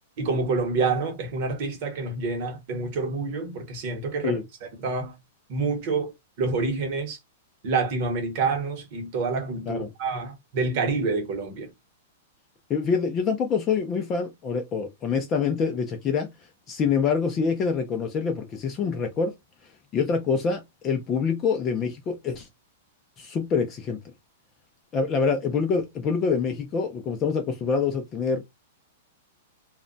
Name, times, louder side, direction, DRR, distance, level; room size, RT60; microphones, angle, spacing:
voice 1, 0.2-5.1 5.5-6.1 6.4-7.2 7.6-11.7, right 4 dB, 35° right, 0.9 m, -27 dB
voice 2, 12.7-16.3 16.7-19.3 19.9-22.5 23.2-24.0 24.9-28.4, left 5 dB, 15° left, 0.3 m, -26 dB
2.1 x 2.0 x 3.7 m
supercardioid pair, 180°, 0 cm